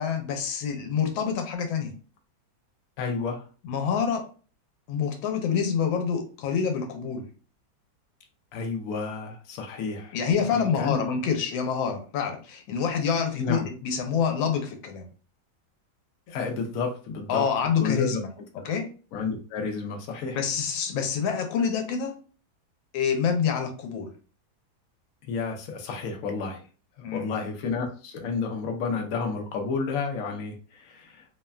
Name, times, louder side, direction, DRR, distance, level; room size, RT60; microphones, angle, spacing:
voice 1, 0.0-1.9 3.6-4.2 4.9-7.3 10.1-15.1 17.3-18.3 18.6-18.9 20.3-22.1 22.9-24.1 27.0-27.3, left 6 dB, 90° left, 4 dB, 1.4 m, -27 dB
voice 2, 3.0-3.4 8.5-10.2 10.5-11.0 13.4-13.7 16.3-17.5 17.8-18.2 18.6-18.7 19.1-20.4 25.3-26.6 27.1-31.3, left 4 dB, 75° left, 3 dB, 0.7 m, -31 dB
3.3 x 2.1 x 2.3 m, 0.37 s
omnidirectional pair, 2.1 m